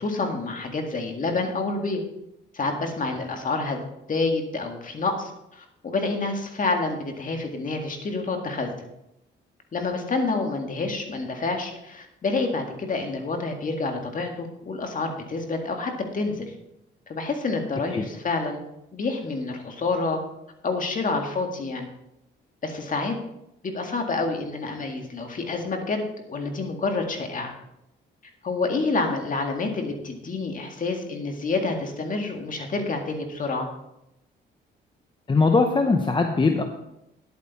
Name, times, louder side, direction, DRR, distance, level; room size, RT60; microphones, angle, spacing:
voice 1, 0.0-2.0 2.5-3.8 4.1-8.9 9.7-16.5 17.1-18.6 18.9-20.2 20.6-21.9 22.6-23.1 23.6-27.5 28.4-33.7, left 3 dB, 40° left, 4 dB, 1.9 m, -28 dB
voice 2, 35.3-36.6, left 3 dB, 25° left, 5 dB, 0.9 m, -20 dB
10.5 x 8.5 x 4.2 m, 0.86 s
cardioid pair, 90°, 20 cm